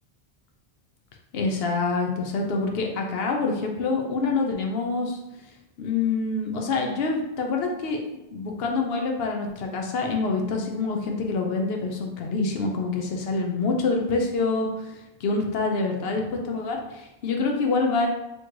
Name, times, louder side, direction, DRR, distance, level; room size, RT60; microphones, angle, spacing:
voice 1, 1.3-5.2 5.8-8.1 8.3-14.7 15.2-18.1, left 3 dB, 75° left, 2 dB, 0.9 m, -26 dB
4.3 x 3.1 x 3.0 m, 0.92 s
omnidirectional pair, 1.0 m